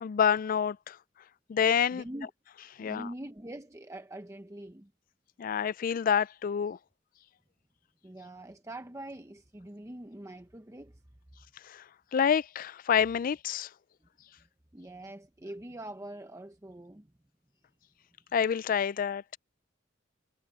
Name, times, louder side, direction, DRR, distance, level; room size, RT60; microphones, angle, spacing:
voice 1, 0.0-1.0 1.5-2.0 2.8-3.1 5.4-6.8 11.7-11.8 12.1-13.7 18.3-19.2, left 7 dB, 45° left, 0.3 m, -27 dB
voice 2, 1.9-2.3 2.8-4.9 8.0-11.0 14.4-14.5 14.7-17.1, right 1 dB, 15° right, 0.8 m, -44 dB
head